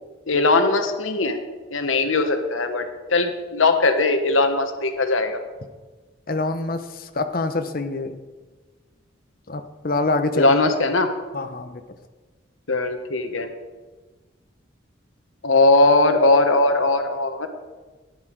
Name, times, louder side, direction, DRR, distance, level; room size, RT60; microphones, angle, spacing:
voice 1, 0.3-1.4 1.7-2.8 3.1-5.4 10.3-11.1 12.7-13.5 15.4-17.5, left 2 dB, 85° left, 7 dB, 1.2 m, -19 dB
voice 2, 6.3-8.2 9.5-10.5 11.3-11.8, left 2 dB, 45° left, 8 dB, 0.8 m, -25 dB
13.5 x 10.0 x 4.6 m, 1.3 s
head